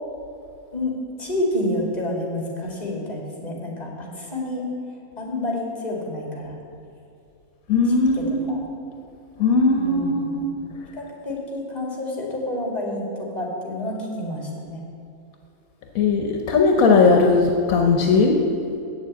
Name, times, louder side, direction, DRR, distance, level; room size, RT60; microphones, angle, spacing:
voice 1, 0.7-4.7 5.2-6.6 8.5-8.6 9.7-10.5 10.9-14.8, left 1 dB, 30° left, -2 dB, 2.2 m, -29 dB
voice 2, 7.7-8.6 9.4-10.5 15.9-18.4, left 4 dB, 75° left, 2 dB, 1.2 m, -18 dB
8.3 x 7.2 x 8.1 m, 2.6 s
omnidirectional pair, 1.5 m